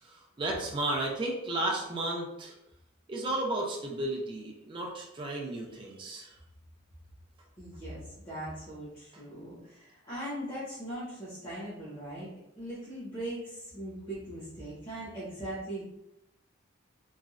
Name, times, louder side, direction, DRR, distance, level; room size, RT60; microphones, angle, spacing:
voice 1, 0.0-2.5 3.1-6.4, right 1 dB, 25° right, -2 dB, 0.4 m, -33 dB
voice 2, 7.6-12.3 12.6-15.8, right 1 dB, 25° left, -10 dB, 0.9 m, -40 dB
3.0 x 2.4 x 2.4 m, 0.84 s
head